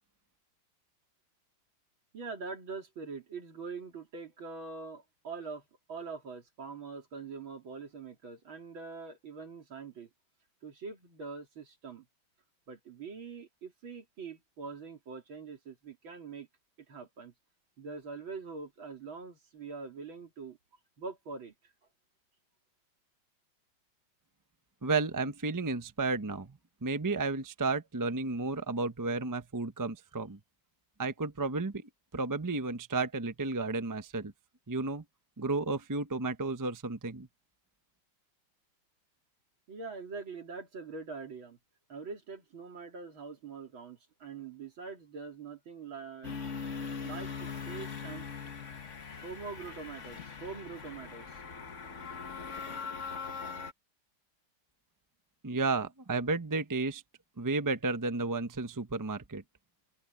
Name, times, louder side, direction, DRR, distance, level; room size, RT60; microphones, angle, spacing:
voice 1, 2.1-10.1 10.6-12.1 12.7-16.5 16.9-17.3 17.8-20.6 21.0-21.5 39.7-41.6 41.9-46.4 47.0-48.3 49.2-51.4, right 4 dB, 70° right, 3.9 m, -43 dB
voice 2, 24.8-30.4 31.0-34.3 34.7-35.0 35.4-37.3 55.4-57.0 57.4-59.4, right 3 dB, 20° right, 0.5 m, -32 dB
sound 1, 46.2-53.7, left 5 dB, 40° left, 1.7 m, -41 dB
open air
omnidirectional pair, 2.3 m